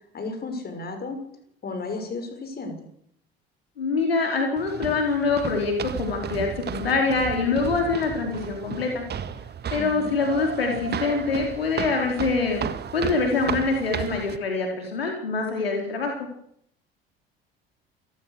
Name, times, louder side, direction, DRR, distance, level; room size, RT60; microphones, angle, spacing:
voice 1, 0.1-1.2 1.6-2.9 9.8-10.1, left 3 dB, 30° left, 7 dB, 6.3 m, -33 dB
voice 2, 3.8-9.0 9.7-16.2, left 4 dB, 75° left, 2 dB, 4.7 m, -25 dB
sound 1, 4.6-14.4, right 8 dB, 35° right, 1.8 m, -34 dB
28.0 x 16.0 x 6.8 m, 0.70 s
figure-of-eight pair, 60°, 30 cm